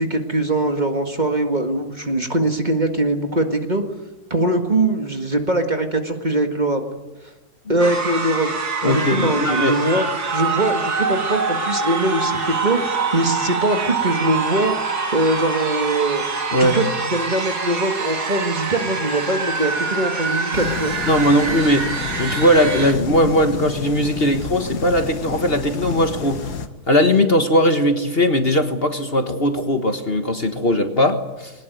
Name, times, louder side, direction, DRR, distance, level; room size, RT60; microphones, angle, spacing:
voice 1, 0.0-3.8 4.3-6.8 7.7-10.0 10.3-14.7 15.1-16.2 16.6-16.8 17.1-20.9, right 2 dB, 30° right, 5 dB, 2.0 m, -22 dB
sound 1, 7.8-22.9, right 4 dB, 80° right, 2.8 m, -25 dB
voice 2, 8.8-9.7 16.5-16.8 21.1-21.9 22.2-26.5 26.9-31.5, equal, 40° left, 7 dB, 1.7 m, -19 dB
sound 2, 20.5-26.7, left 6 dB, 90° left, 2.0 m, -30 dB
22.0 x 19.5 x 9.3 m, 1.1 s
omnidirectional pair, 1.7 m